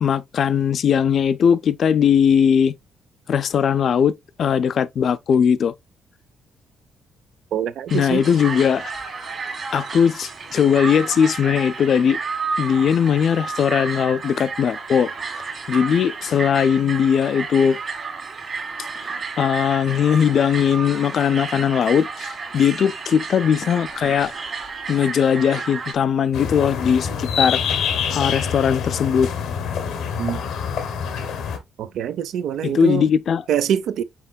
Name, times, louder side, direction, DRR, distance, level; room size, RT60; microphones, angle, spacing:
voice 1, 0.0-2.7 3.3-5.7 7.9-8.9 9.7-12.2 12.6-15.1 15.7-17.8 19.0-24.3 24.9-27.6 28.1-29.3 32.6-33.4, left 7 dB, 60° left, 0.3 m, -19 dB
voice 2, 7.5-8.2 30.2-30.5 31.8-33.1 33.5-34.0, right 9 dB, 75° right, 0.4 m, -24 dB
sound 1, 7.9-25.9, right 5 dB, 45° right, 1.6 m, -31 dB
sound 2, 26.3-31.6, left 7 dB, 80° left, 0.9 m, -26 dB
5.7 x 3.6 x 2.2 m
cardioid pair, 90°, 0 cm